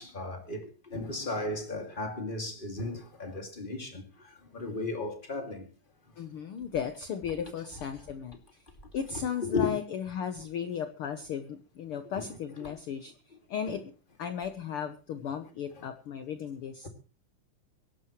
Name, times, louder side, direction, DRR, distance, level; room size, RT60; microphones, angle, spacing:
voice 1, 0.0-5.7 9.1-9.7 12.1-12.3 12.6-12.7 13.7-13.8 15.8-15.9 16.8-16.9, left 3 dB, 20° left, 2.0 m, -35 dB
voice 2, 6.2-8.6 8.9-13.8 14.2-16.9, left 7 dB, 75° left, 1.2 m, -36 dB
23.5 x 11.5 x 3.1 m
omnidirectional pair, 3.8 m